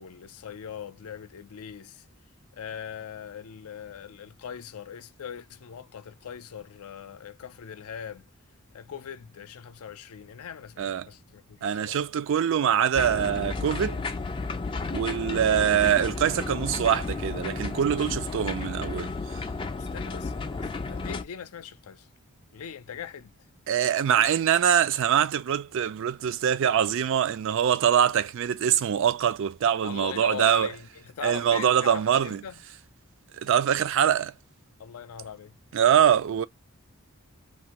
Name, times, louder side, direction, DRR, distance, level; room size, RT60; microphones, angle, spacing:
voice 1, 0.0-2.1 2.5-8.3 8.7-12.0 19.7-22.1 22.5-23.3 29.8-32.6 34.8-35.6, left 8 dB, 85° left, 0.4 m, -41 dB
voice 2, 11.6-14.0 14.9-19.4 23.7-30.7 31.2-32.4 33.4-34.3 35.7-36.5, right 9 dB, 60° right, 0.3 m, -24 dB
sound 1, 12.9-21.2, left 3 dB, 20° left, 0.3 m, -33 dB
2.6 x 2.4 x 2.9 m
head